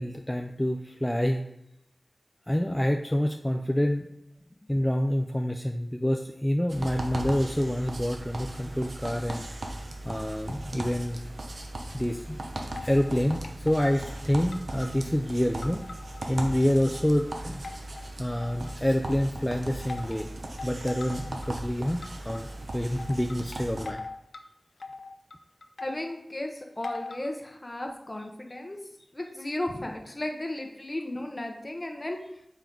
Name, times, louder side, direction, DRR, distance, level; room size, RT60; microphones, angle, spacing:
voice 1, 0.0-1.4 2.5-4.1 4.7-9.5 10.0-11.2 11.9-12.4 12.8-15.8 16.3-17.6 18.2-20.3 20.6-24.0, equal, 10° left, 3 dB, 0.4 m, -27 dB
sound 1, 6.7-23.9, right 1 dB, 75° right, 0.9 m, -38 dB
sound 2, 12.8-13.2 13.4-14.2 14.5-16.2 16.6-17.2 17.6-18.9 19.9-20.2 20.6-21.5 22.0-22.4 23.0-24.4 24.8-26.1 26.8-27.3, left 3 dB, 80° left, 0.5 m, -41 dB
voice 2, 25.8-28.8 29.1-32.2, left 1 dB, 30° left, 3 dB, 1.0 m, -35 dB
7.1 x 4.5 x 3.8 m, 0.81 s
wide cardioid pair, 70°, 0 cm